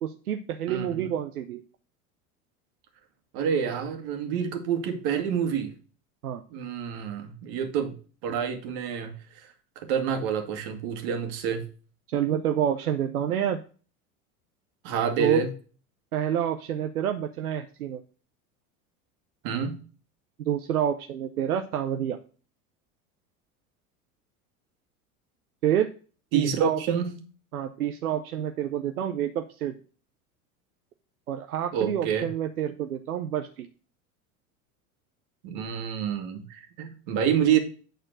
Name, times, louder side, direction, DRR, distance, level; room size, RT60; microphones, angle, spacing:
voice 1, 0.0-1.6 6.2-6.4 12.1-13.6 15.2-15.4 16.1-18.0 20.5-22.2 25.6-25.9 26.3-26.8 27.5-29.7 31.3-33.7, right 10 dB, 85° right, 0.8 m, -28 dB
voice 2, 0.7-1.2 3.3-5.7 6.5-8.0 8.2-9.1 9.8-11.6 14.8-15.5 19.4-19.8 26.3-27.2 31.7-32.3 35.4-37.6, right 7 dB, 60° right, 2.0 m, -28 dB
9.2 x 4.3 x 6.3 m
hypercardioid pair, 80°, 43 cm